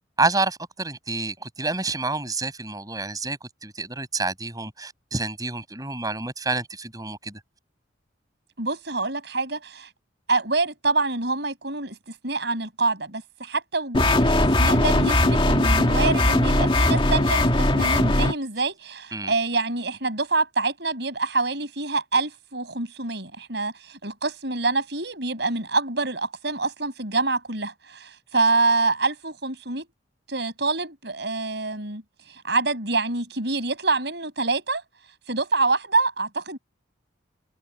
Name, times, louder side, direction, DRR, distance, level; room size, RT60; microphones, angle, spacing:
voice 1, 0.2-7.4 19.1-19.3, right 3 dB, 20° right, 6.9 m, -28 dB
voice 2, 8.6-9.9 10.3-14.3 14.6-29.9 30.3-32.0 32.3-34.8 35.3-36.6, right 3 dB, 60° right, 7.8 m, -26 dB
sound 1, 13.9-18.3, left 1 dB, 25° left, 2.3 m, -19 dB
head